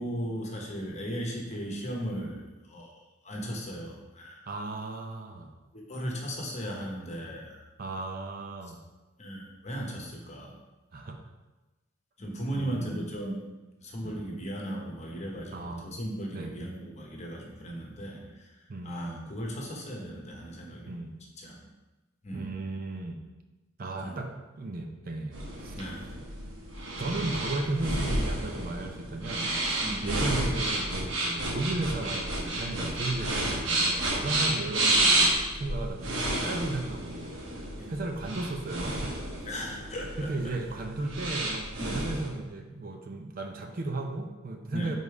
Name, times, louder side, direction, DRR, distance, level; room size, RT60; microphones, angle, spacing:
voice 1, 0.0-4.4 5.7-7.6 9.2-10.5 12.2-13.4 13.8-20.9 21.4-21.6 22.2-22.5 24.0-24.1 25.7-26.1 29.8-30.0 37.8-37.9 39.4-40.3 41.8-42.0 44.7-44.9, equal, 35° left, -1 dB, 1.1 m, -37 dB
voice 2, 4.5-5.5 7.8-8.8 10.9-11.2 12.5-13.1 14.0-14.1 15.5-15.9 16.3-16.5 18.7-19.3 20.9-21.1 22.3-23.2 23.8-25.8 27.0-39.1 40.2-45.0, right 2 dB, 45° right, 3 dB, 0.6 m, -35 dB
sound 1, 25.3-42.3, right 1 dB, 70° right, 1.1 m, -30 dB
5.2 x 4.0 x 4.8 m, 1.1 s
head